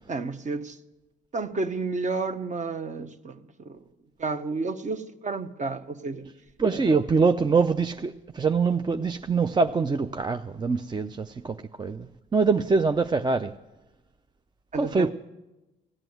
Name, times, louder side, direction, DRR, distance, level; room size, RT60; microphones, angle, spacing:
voice 1, 0.1-0.8 1.3-3.8 4.2-6.3 6.7-7.0 14.7-15.1, right 4 dB, 35° right, 0.9 m, -31 dB
voice 2, 6.6-13.5 14.7-15.1, right 4 dB, 20° right, 0.4 m, -24 dB
15.5 x 9.0 x 7.9 m
cardioid pair, 90°, 20 cm